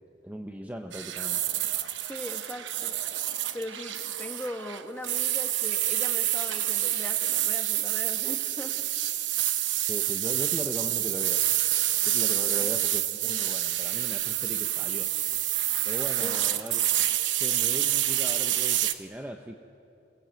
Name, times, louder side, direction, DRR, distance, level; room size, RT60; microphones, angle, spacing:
voice 1, 0.2-1.4 9.9-11.5 12.0-15.1 15.8-16.8 17.4-19.6, equal, 10° right, 3 dB, 0.9 m, -38 dB
sound 1, 0.9-18.9, right 13 dB, 80° right, 0.9 m, -28 dB
voice 2, 2.1-2.9 3.5-8.8 12.6-12.7 16.2-16.4, left 1 dB, 10° left, 4 dB, 1.5 m, -39 dB
27.5 x 19.0 x 7.7 m, 2.7 s
head